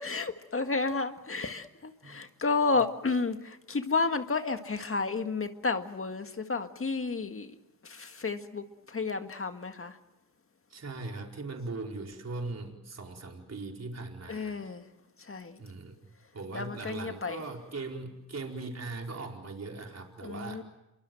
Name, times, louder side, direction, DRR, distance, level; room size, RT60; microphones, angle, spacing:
voice 1, 0.0-7.5 7.8-10.0 14.3-14.8 15.3-15.5 16.5-17.4 20.2-20.6, left 4 dB, 35° left, 1.8 m, -31 dB
voice 2, 10.7-14.6 15.6-15.9 16.3-20.6, right 3 dB, 45° right, 4.7 m, -39 dB
27.5 x 24.0 x 7.8 m
cardioid pair, 80°, 37 cm